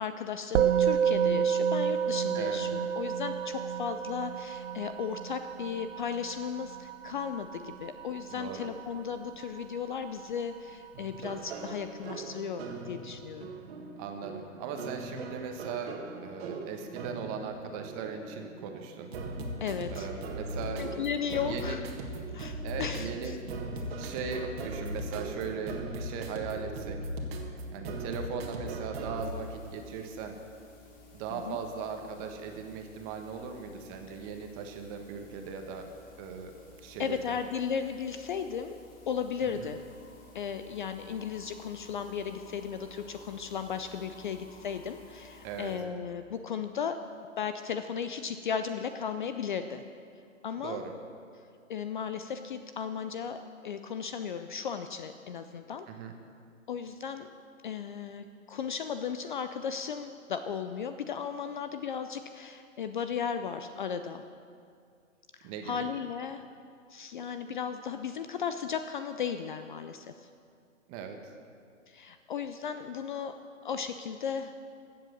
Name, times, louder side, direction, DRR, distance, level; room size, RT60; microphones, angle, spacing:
voice 1, 0.0-13.5 19.6-20.1 20.8-21.8 22.3-23.4 31.3-31.6 37.0-38.8 39.1-39.8 40.3-47.0 47.4-49.8 50.4-50.8 51.7-55.9 56.7-57.3 57.6-64.2 65.4-66.4 66.9-70.1 71.9-73.3 73.6-74.5, left 7 dB, 40° left, 9 dB, 0.4 m, -35 dB
Musical instrument, 0.6-10.1, right 8 dB, 65° right, 0.6 m, -30 dB
voice 2, 8.3-8.7 14.0-19.1 19.9-20.9 21.4-21.8 22.6-23.4 24.0-27.0 27.7-30.4 31.1-35.9 36.2-36.5 36.8-37.4 39.4-39.7 45.4-45.7 50.6-50.9 55.9-56.1 65.4-65.9 70.9-71.3, right 6 dB, 25° right, 5 dB, 1.2 m, -39 dB
sound 1, 10.9-29.3, right 2 dB, 50° right, 1.7 m, -39 dB
sound 2, 29.2-45.8, left 3 dB, 20° left, 1.9 m, -54 dB
15.0 x 7.7 x 6.6 m, 2.3 s
hypercardioid pair, 135°, 40 cm